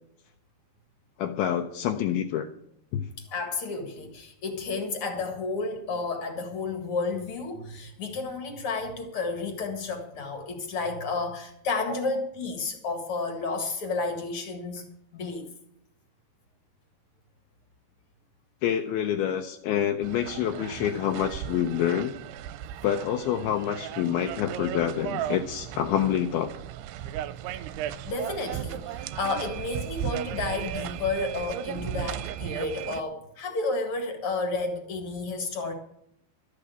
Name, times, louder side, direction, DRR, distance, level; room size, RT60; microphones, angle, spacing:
voice 1, 1.2-2.5 2.9-3.1 18.6-22.2 22.8-26.5, left 10 dB, 80° left, 5 dB, 2.4 m, -27 dB
voice 2, 3.3-14.8 15.1-15.5 28.1-35.7, left 3 dB, 45° left, 6 dB, 1.9 m, -31 dB
sound 1, 20.0-33.0, right 11 dB, 80° right, 2.6 m, -36 dB
13.0 x 8.5 x 8.1 m, 0.72 s
omnidirectional pair, 4.8 m